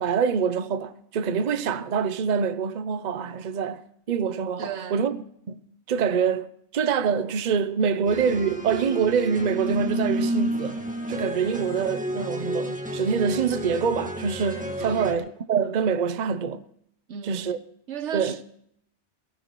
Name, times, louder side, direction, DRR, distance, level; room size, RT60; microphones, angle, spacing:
voice 1, 0.0-3.8 4.1-5.2 5.5-5.6 5.9-10.8 11.1-16.6 17.2-17.6 18.1-18.4, right 6 dB, 45° right, 0.7 m, -25 dB
voice 2, 4.6-5.0 14.8-15.1 17.1-17.4 17.9-18.4, right 8 dB, 85° right, 1.2 m, -35 dB
sound 1, 8.1-15.2, right 1 dB, 5° right, 1.7 m, -31 dB
19.0 x 18.0 x 3.1 m
omnidirectional pair, 1.2 m